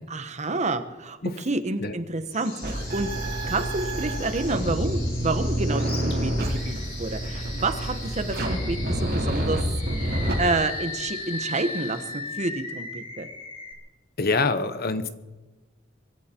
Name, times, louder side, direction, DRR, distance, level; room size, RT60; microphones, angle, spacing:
voice 1, 0.1-9.6 10.0-13.3, right 2 dB, 40° right, 9 dB, 1.2 m, -29 dB
sound 1, 2.2-12.5, left 3 dB, 85° left, 7.6 m, -42 dB
sound 2, 2.6-10.3, right 1 dB, 55° right, 4.7 m, -28 dB
Animal, 5.8-6.1 6.6-6.8 8.4-9.1 9.8-13.7, left 3 dB, 30° left, 2.3 m, -36 dB
voice 2, 14.2-15.1, left 3 dB, 55° left, 11 dB, 1.0 m, -24 dB
24.5 x 12.5 x 4.5 m, 1.2 s
head